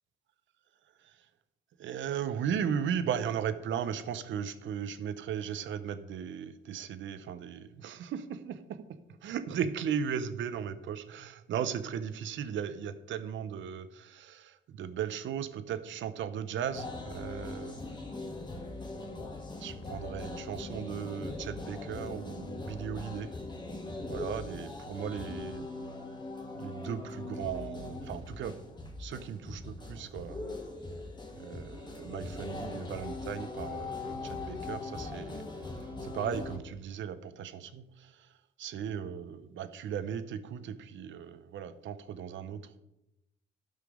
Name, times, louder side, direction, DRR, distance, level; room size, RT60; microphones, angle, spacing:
voice 1, 1.8-8.8 9.2-17.8 18.9-19.2 19.6-23.3 24.1-25.7 26.6-28.6 29.0-30.4 31.3-35.5 36.0-38.1 38.6-42.8, right 8 dB, 75° right, 12 dB, 0.9 m, -37 dB
sound 1, 16.7-36.6, left 2 dB, 20° left, 1.7 m, -41 dB
13.0 x 5.8 x 5.1 m, 0.88 s
cardioid pair, 90°, 20 cm